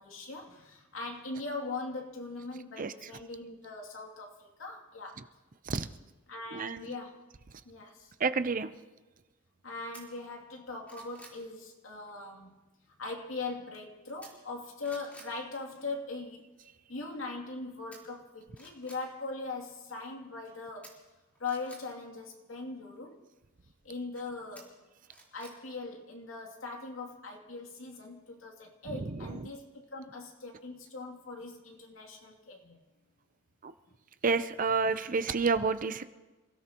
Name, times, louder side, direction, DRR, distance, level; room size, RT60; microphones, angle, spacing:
voice 1, 0.0-5.2 6.3-7.2 7.6-8.1 9.6-12.6 13.0-16.5 16.9-21.0 21.4-23.2 23.8-24.8 25.3-32.8 33.9-34.0, left 3 dB, 75° left, 1 dB, 2.7 m, -41 dB
voice 2, 6.5-6.9 8.2-8.7 28.9-29.5 33.6-33.7 34.2-36.1, right 4 dB, 40° right, 11 dB, 0.6 m, -30 dB
sound 1, 9.9-10.0 10.5-11.4 14.2-14.6 14.8-15.3 17.9-18.0 18.5-19.0 20.8-21.8 24.5-25.6 25.9-26.0, right 1 dB, 5° left, 4.1 m, -52 dB
28.0 x 16.5 x 3.0 m, 1.2 s
head